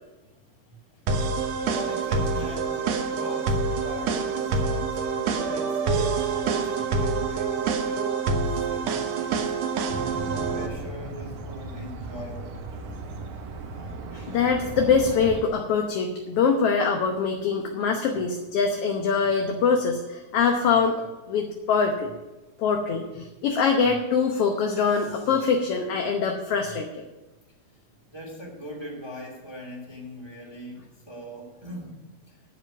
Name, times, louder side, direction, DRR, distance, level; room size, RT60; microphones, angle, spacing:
sound 1, 1.1-10.7, right 4 dB, 70° right, 2.0 m, -26 dB
voice 1, 1.6-9.5 10.1-12.8 28.1-32.4, equal, 10° right, -2 dB, 2.5 m, -41 dB
sound 2, 9.9-15.4, right 3 dB, 85° right, 2.6 m, -36 dB
voice 2, 14.1-21.0 21.3-22.1 22.6-27.0, left 5 dB, 65° left, 3 dB, 1.7 m, -23 dB
12.5 x 5.1 x 8.9 m, 1.1 s
omnidirectional pair, 3.4 m